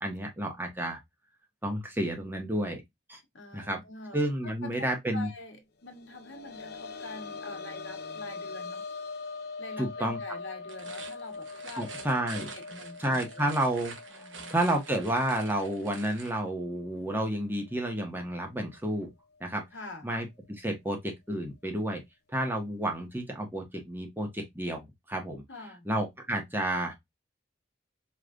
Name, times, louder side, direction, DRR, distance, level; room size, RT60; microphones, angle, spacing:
voice 1, 0.0-1.0 1.6-2.8 3.1-3.2 3.5-3.8 4.1-5.3 9.8-10.2 11.8-12.5 13.0-14.2 14.5-19.1 19.4-19.6 20.0-20.3 20.6-22.0 22.3-25.4 25.8-26.9, right 1 dB, 10° right, 1.2 m, -30 dB
voice 2, 3.3-8.8 9.6-12.1 12.4-13.6 14.1-14.6 19.7-20.1 25.5-25.9, left 2 dB, 85° left, 1.4 m, -45 dB
sound 1, 5.9-17.4 17.7-17.8 19.3-19.4, left 4 dB, 55° left, 0.6 m, -42 dB
sound 2, 10.6-16.4, right 5 dB, 90° right, 1.1 m, -46 dB
4.8 x 3.3 x 2.5 m
head